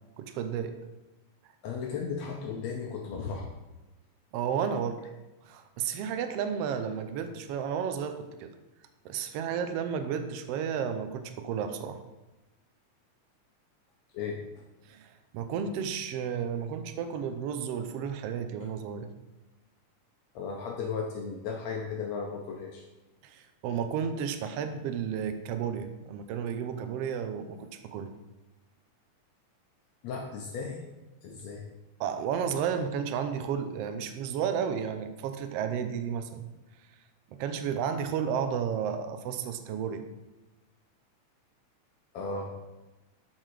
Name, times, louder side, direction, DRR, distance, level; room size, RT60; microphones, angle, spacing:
voice 1, 0.2-0.7 4.3-5.0 5.4-8.5 9.0-12.0 14.9-19.1 23.2-28.1 32.0-36.4 37.4-40.0, right 7 dB, 80° right, 9 dB, 1.4 m, -32 dB
voice 2, 1.6-3.5 14.1-14.4 20.4-22.9 30.0-30.8 31.2-31.7 42.1-42.6, left 5 dB, 70° left, 1 dB, 1.9 m, -35 dB
8.3 x 6.3 x 4.7 m, 1.1 s
omnidirectional pair, 3.5 m